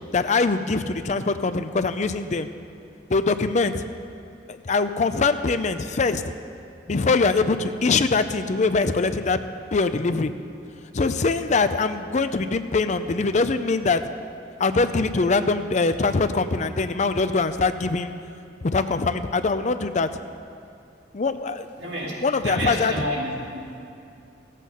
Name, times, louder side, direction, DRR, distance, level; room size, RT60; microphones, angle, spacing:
voice 1, 0.1-2.5 3.1-3.9 4.5-6.2 6.9-9.4 9.7-10.3 10.9-14.0 14.6-18.1 18.6-20.1 21.1-21.7 22.2-22.9, left 4 dB, 40° left, 10 dB, 0.5 m, -23 dB
voice 2, 21.8-22.1 22.4-23.8, equal, 70° right, -4 dB, 2.4 m, -29 dB
14.5 x 8.3 x 5.6 m, 2.5 s
head